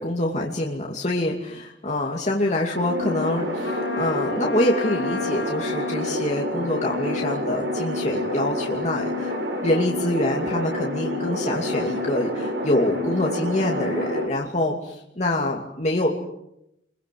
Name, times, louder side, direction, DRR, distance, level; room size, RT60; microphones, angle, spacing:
voice 1, 0.0-9.3 9.6-16.1, left 1 dB, 40° left, -1 dB, 2.6 m, -25 dB
sound 1, 2.7-14.3, left 1 dB, 65° right, 6.7 m, -28 dB
Trumpet, 3.6-6.1, left 3 dB, 65° left, 1.8 m, -33 dB
28.0 x 23.0 x 7.7 m, 0.83 s
head